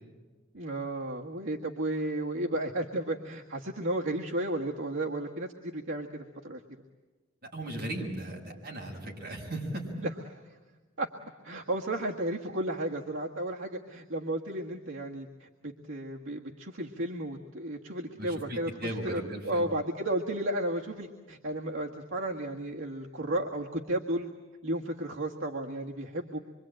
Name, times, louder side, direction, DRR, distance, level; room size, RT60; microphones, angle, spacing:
voice 1, 0.5-6.6 11.0-11.1 11.4-24.3 24.6-26.4, right 1 dB, 70° right, -1 dB, 1.7 m, -33 dB
voice 2, 7.4-10.0 18.2-19.7, right 1 dB, 45° right, -1 dB, 6.3 m, -37 dB
25.5 x 24.5 x 8.9 m, 1.3 s
head